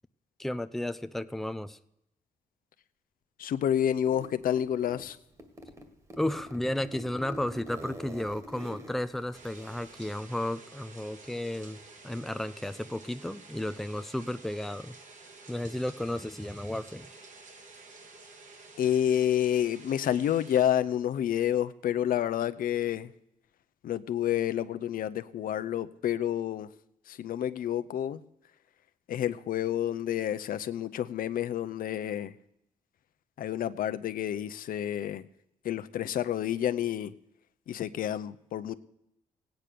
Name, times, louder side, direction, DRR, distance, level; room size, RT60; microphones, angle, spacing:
voice 1, 0.4-1.8 6.2-11.8 12.0-15.0 15.5-17.1, left 1 dB, ahead, 0.6 m, -33 dB
voice 2, 3.4-5.2 18.8-23.1 23.8-26.7 27.1-28.2 29.1-32.3 33.4-35.2 35.6-37.1 37.7-38.7, left 10 dB, 80° left, 0.7 m, -29 dB
Zipper (clothing), 4.1-5.1 5.4-10.1, equal, 20° right, 2.1 m, -45 dB
sound 1, 9.3-20.7, right 3 dB, 60° right, 2.6 m, -51 dB
17.0 x 9.1 x 6.8 m
cardioid pair, 110°, 14 cm